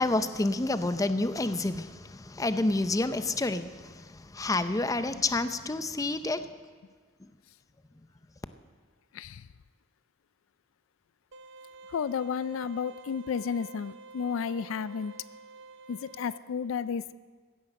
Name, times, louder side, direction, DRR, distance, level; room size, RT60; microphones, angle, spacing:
voice 1, 0.0-6.5, left 2 dB, 15° left, 11 dB, 0.5 m, -29 dB
sound 1, 11.3-16.4, right 3 dB, 60° right, 0.6 m, -49 dB
voice 2, 11.9-15.1 15.9-17.1, left 6 dB, 70° left, 16 dB, 0.4 m, -32 dB
16.0 x 10.0 x 6.4 m, 1.5 s
head